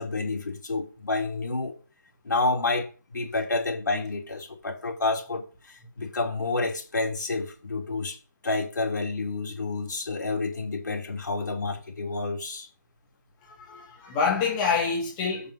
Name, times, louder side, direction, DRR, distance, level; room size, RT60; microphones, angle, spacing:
voice 1, 0.0-1.7 2.2-8.2 8.4-12.7, left 3 dB, 65° left, 3.2 m, -29 dB
voice 2, 13.6-15.5, left 5 dB, 15° left, 1.8 m, -26 dB
7.1 x 5.8 x 6.3 m
figure-of-eight pair, 160°, 11 cm